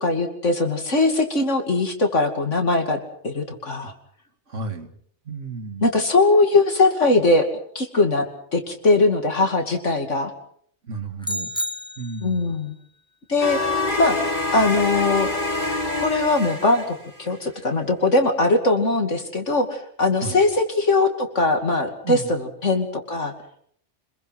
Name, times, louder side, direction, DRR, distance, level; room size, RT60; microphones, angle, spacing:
voice 1, 0.0-3.9 5.8-7.5 7.7-8.3 8.5-10.3 12.2-12.8 13.3-13.6 14.0-14.2 14.5-15.3 16.0-23.3, left 3 dB, 80° left, 4 dB, 3.0 m, -20 dB
voice 2, 4.5-4.9 5.3-5.9 10.8-11.5 12.0-12.5 20.2-20.4 22.0-22.3, right 4 dB, 85° right, 8 dB, 2.3 m, -32 dB
sound 1, 11.2-12.6, left 1 dB, 5° left, 1.0 m, -30 dB
sound 2, 13.4-17.3, left 2 dB, 40° left, 4.8 m, -26 dB
26.5 x 22.0 x 6.0 m, 0.63 s
omnidirectional pair, 1.2 m